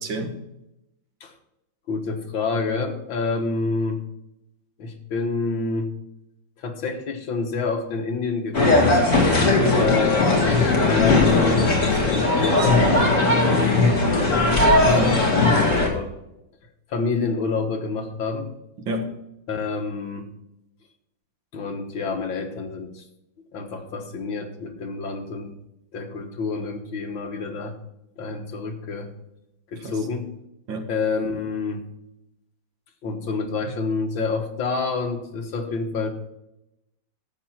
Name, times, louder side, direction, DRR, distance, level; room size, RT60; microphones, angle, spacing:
voice 1, 0.0-0.4 9.3-10.0 14.9-15.3 18.8-19.1 29.7-30.1 30.7-30.9, equal, 75° right, 4 dB, 2.3 m, -28 dB
voice 2, 1.9-4.0 4.8-5.9 6.6-9.0 9.8-10.4 10.8-15.1 15.4-16.1 16.9-18.5 19.5-20.3 21.5-23.0 23.5-25.6 25.9-27.8 28.2-29.1 29.7-30.3 30.9-31.9 33.0-36.1, left 4 dB, 80° left, 4 dB, 2.2 m, -28 dB
sound 1, 8.5-15.9, left 2 dB, 40° left, 2.7 m, -18 dB
12.5 x 7.9 x 4.4 m, 0.87 s
omnidirectional pair, 2.1 m